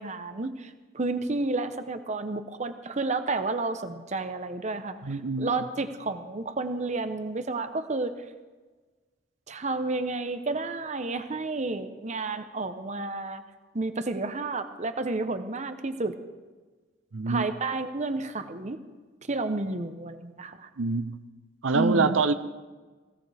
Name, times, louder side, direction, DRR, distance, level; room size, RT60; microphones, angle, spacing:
voice 1, 0.0-8.1 9.5-13.4 13.7-16.2 17.3-18.8 19.3-20.7 21.7-22.2, right 3 dB, 40° right, 9 dB, 0.9 m, -31 dB
voice 2, 5.0-5.5 17.1-17.5 20.8-21.2 21.6-22.3, right 4 dB, 80° right, 11 dB, 0.7 m, -25 dB
20.5 x 16.5 x 3.5 m, 1.3 s
head